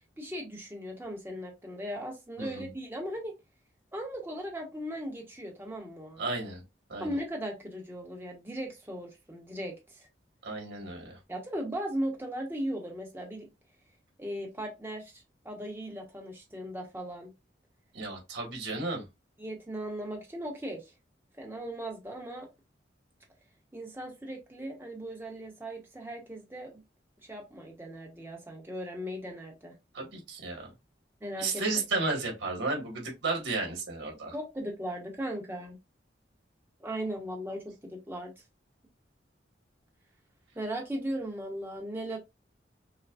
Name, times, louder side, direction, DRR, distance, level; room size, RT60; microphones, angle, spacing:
voice 1, 0.2-3.4 3.9-6.2 7.0-10.1 11.3-13.5 14.2-17.3 19.4-20.9 21.4-22.5 23.7-26.8 27.2-29.7 31.2-31.6 34.3-35.8 36.8-38.3 40.5-42.2, equal, 10° right, 1.1 m, -38 dB
voice 2, 2.4-2.7 6.2-6.6 6.9-7.1 10.4-11.2 17.9-19.0 29.9-30.7 31.4-34.3, right 3 dB, 80° right, 1.8 m, -33 dB
5.7 x 2.3 x 2.4 m
head